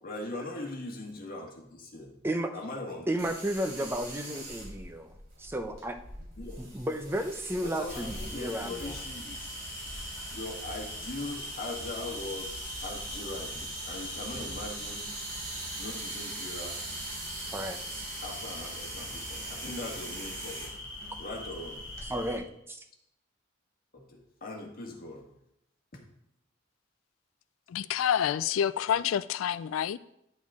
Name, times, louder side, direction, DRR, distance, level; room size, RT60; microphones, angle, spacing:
voice 1, 0.0-2.2 2.5-3.1 6.4-6.8 7.6-9.6 10.3-15.2 15.8-16.8 18.2-20.8 21.2-21.9 23.9-25.3 25.9-26.0, left 2 dB, 50° left, 1.6 m, -40 dB
voice 2, 3.1-5.1 5.4-6.0 6.6-9.0 17.5-18.1 22.1-22.8, right 1 dB, 10° right, 0.7 m, -33 dB
sound 1, 3.2-22.1, right 2 dB, 50° right, 3.4 m, -42 dB
sound 2, 7.9-22.4, left 1 dB, 65° left, 1.8 m, -42 dB
voice 3, 27.7-30.0, left 9 dB, 90° left, 0.3 m, -28 dB
10.0 x 6.1 x 3.7 m
head